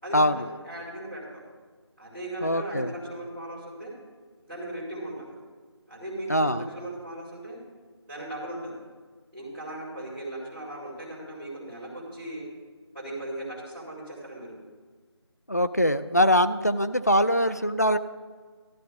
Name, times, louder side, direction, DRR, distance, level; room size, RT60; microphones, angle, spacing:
voice 1, 0.0-1.4 2.0-3.9 4.4-5.3 5.9-7.6 8.1-8.7 9.3-12.5 12.9-14.6, right 1 dB, 5° left, -19 dB, 2.0 m, -37 dB
voice 2, 2.4-2.9 6.3-6.7 15.5-18.0, equal, 35° left, 11 dB, 0.4 m, -22 dB
12.5 x 12.0 x 3.5 m, 1.5 s
figure-of-eight pair, 180°, 15 cm